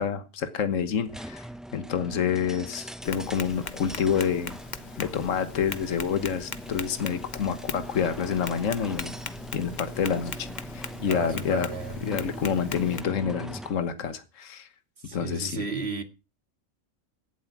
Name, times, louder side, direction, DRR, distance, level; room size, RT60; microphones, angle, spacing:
voice 1, 0.0-1.4 1.7-4.6 5.0-9.1 9.5-10.5 10.7-11.7 12.0-14.7 15.1-15.6, left 7 dB, 70° left, 1.6 m, -28 dB
sound 1, 1.1-13.9, right 1 dB, ahead, 0.5 m, -41 dB
Tap, 3.0-13.0, left 5 dB, 40° left, 0.9 m, -40 dB
voice 2, 11.1-12.0 15.0-16.0, right 4 dB, 50° right, 2.2 m, -34 dB
16.5 x 7.7 x 5.9 m
omnidirectional pair, 1.4 m